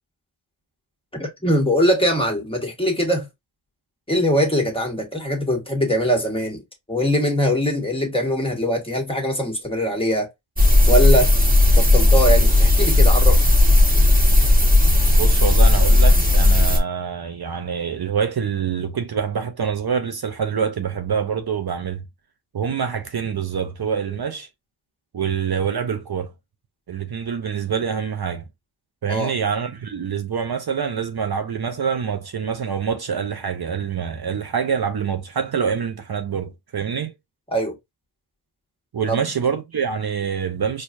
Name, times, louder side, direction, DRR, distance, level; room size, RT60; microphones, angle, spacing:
voice 1, 1.2-3.3 4.1-6.6 6.9-10.3 10.9-11.3 11.8-13.4 29.1-29.3 37.5-37.7 39.1-39.2, equal, 10° left, 1.5 m, -21 dB
sound 1, 10.6-16.8, left 2 dB, 20° right, 1.2 m, -14 dB
voice 2, 15.2-22.0 22.5-24.5 25.1-26.3 26.9-28.4 29.0-37.1 38.9-40.8, right 7 dB, 55° right, 0.6 m, -25 dB
4.5 x 2.4 x 2.5 m
wide cardioid pair, 50°, 46 cm